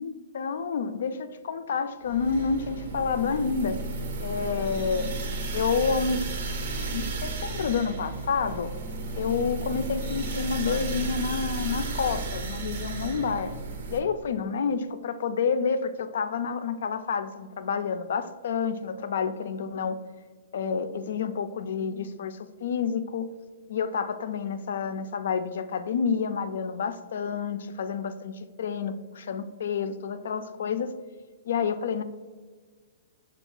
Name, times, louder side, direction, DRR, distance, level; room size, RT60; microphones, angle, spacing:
voice 1, 0.0-3.8 4.2-5.1 5.5-6.4 6.9-8.7 9.1-13.5 13.9-20.0 20.5-23.3 23.7-30.9 31.5-32.0, left 6 dB, 70° left, 11 dB, 0.3 m, -29 dB
sound 1, 2.1-14.0, right 3 dB, 70° right, 0.6 m, -33 dB
5.9 x 2.3 x 3.7 m, 1.5 s
hypercardioid pair, 130°, 0 cm